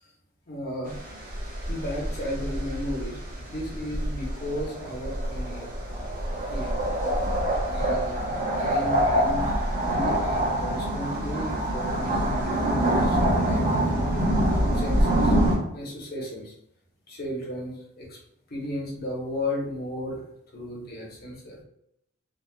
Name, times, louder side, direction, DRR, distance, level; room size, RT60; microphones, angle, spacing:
voice 1, 0.5-1.0 1.7-3.2 3.5-5.7 6.5-6.7 7.7-9.5 9.8-14.3 14.7-15.4 15.7-16.5 17.1-18.2 18.5-20.2 20.5-21.6, left 1 dB, 50° left, -3 dB, 1.0 m, -34 dB
sound 1, 0.9-15.6, right 1 dB, 45° right, 1.1 m, -26 dB
3.6 x 2.4 x 2.3 m, 0.75 s
head